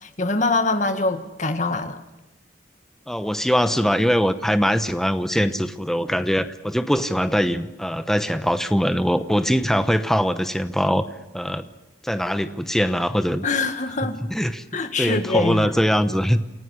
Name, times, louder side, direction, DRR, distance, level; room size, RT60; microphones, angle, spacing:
voice 1, 0.0-2.0 13.4-14.2 14.7-15.7, left 3 dB, 40° left, 1.9 m, -23 dB
voice 2, 3.1-11.0 11.3-11.7 12.0-13.5 14.3-14.6 15.0-16.4, equal, ahead, 0.9 m, -22 dB
28.5 x 16.5 x 8.3 m
head